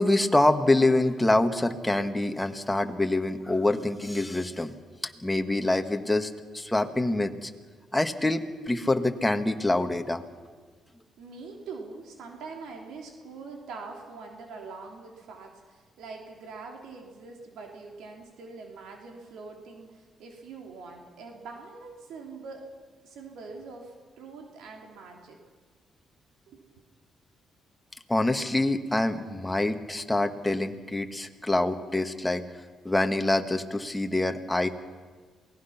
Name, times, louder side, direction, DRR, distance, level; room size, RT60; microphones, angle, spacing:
voice 1, 0.0-4.7 5.0-7.5 7.9-10.2 28.1-32.4 32.8-34.7, left 2 dB, 10° left, 6 dB, 1.7 m, -25 dB
voice 2, 11.2-22.6 23.0-25.4 26.5-26.6, right 4 dB, 85° right, 1 dB, 3.2 m, -43 dB
28.0 x 19.0 x 5.9 m, 1.5 s
cardioid pair, 90°, 0 cm